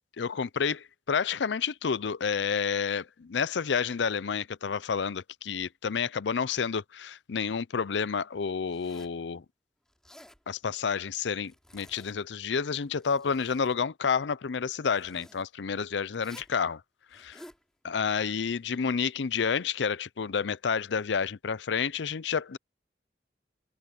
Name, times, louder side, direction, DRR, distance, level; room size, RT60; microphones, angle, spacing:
voice 1, 0.2-9.4 10.5-16.8 17.1-17.3 17.8-22.6, left 6 dB, 85° left, 0.5 m, -30 dB
Zipper (clothing), 8.7-9.2 9.9-10.4 11.4-12.3 12.8-13.8 14.9-15.4 16.1-16.6 17.1-17.6, equal, 5° left, 3.7 m, -53 dB
head